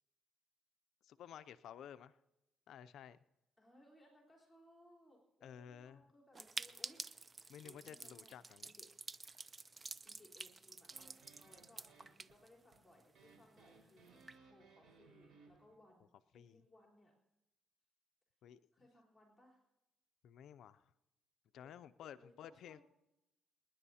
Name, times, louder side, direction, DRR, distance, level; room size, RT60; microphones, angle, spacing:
voice 1, 1.0-2.1 2.7-3.2 5.4-6.0 7.5-8.7 16.3-16.6 18.4-18.6 20.2-20.8 21.5-22.8, left 9 dB, 75° left, 13 dB, 0.4 m, -53 dB
voice 2, 3.6-7.0 7.3-8.4 8.6-8.9 10.0-17.1 18.7-19.6 22.2-22.8, left 1 dB, 10° left, -3 dB, 3.7 m, -66 dB
sound 1, 6.3-13.0 13.3-13.4 13.6-13.7 14.1-14.4, right 3 dB, 30° right, 0.4 m, -49 dB
sound 2, 10.9-15.8, right 4 dB, 70° right, 4.5 m, -65 dB
27.0 x 10.5 x 2.8 m, 0.92 s
cardioid pair, 90°, 0 cm